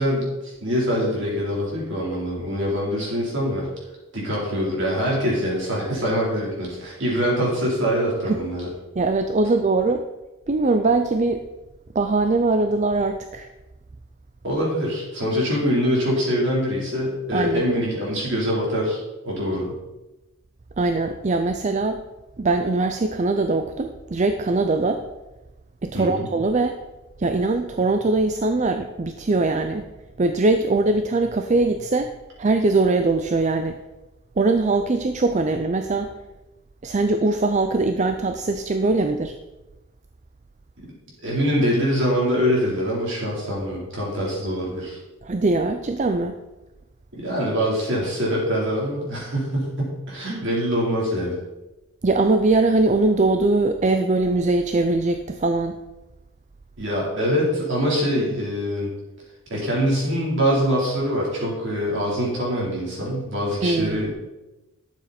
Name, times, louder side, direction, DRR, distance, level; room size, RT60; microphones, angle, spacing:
voice 1, 0.0-3.7 4.1-8.7 14.4-19.0 19.2-19.7 25.9-26.3 41.2-45.0 47.1-51.4 56.8-58.9 59.5-64.1, equal, 55° right, -4 dB, 3.9 m, -24 dB
voice 2, 9.0-10.0 10.5-11.5 11.9-13.5 17.3-17.6 20.8-22.0 22.4-25.0 25.8-26.8 27.2-29.9 30.2-32.1 32.4-33.8 34.4-36.1 36.8-39.3 45.2-46.3 52.0-55.8 63.6-64.0, right 3 dB, 35° right, 7 dB, 0.4 m, -21 dB
12.0 x 7.3 x 4.3 m, 1.0 s
head